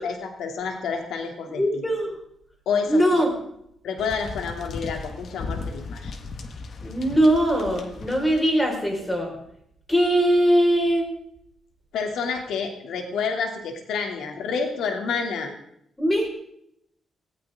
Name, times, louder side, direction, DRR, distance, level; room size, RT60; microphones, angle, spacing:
voice 1, 0.0-1.6 2.7-3.2 3.8-6.1 11.9-15.5, left 5 dB, 90° left, 4 dB, 2.8 m, -29 dB
voice 2, 1.5-2.1 2.9-3.3 6.8-9.3 9.9-11.1 16.0-16.3, equal, 10° left, 1 dB, 5.0 m, -21 dB
sound 1, 4.0-8.5, left 4 dB, 50° left, 1.7 m, -36 dB
18.5 x 18.5 x 3.7 m, 0.72 s
cardioid pair, 145°, 0 cm